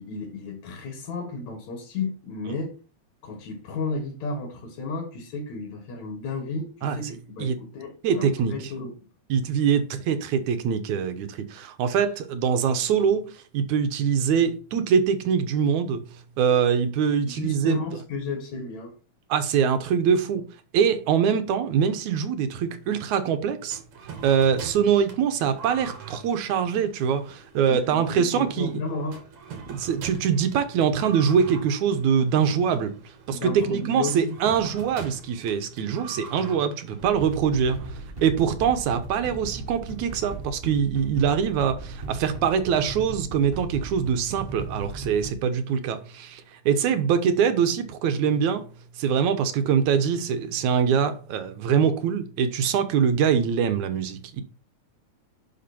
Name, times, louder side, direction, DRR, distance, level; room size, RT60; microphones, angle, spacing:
voice 1, 0.0-2.8 3.2-8.9 17.2-18.9 27.7-29.2 33.3-34.3, left 3 dB, 70° left, 3.2 m, -33 dB
voice 2, 6.8-7.6 8.0-8.5 9.3-13.3 13.5-16.0 16.4-17.8 19.3-20.4 20.7-23.8 24.2-28.8 29.7-32.9 33.3-37.8 38.2-48.7 49.0-54.4, right 7 dB, 85° right, 2.5 m, -23 dB
sound 1, 23.7-38.4, right 5 dB, 70° right, 3.1 m, -44 dB
sound 2, 37.0-45.3, right 3 dB, 35° right, 1.0 m, -37 dB
11.0 x 6.0 x 4.4 m
omnidirectional pair, 3.3 m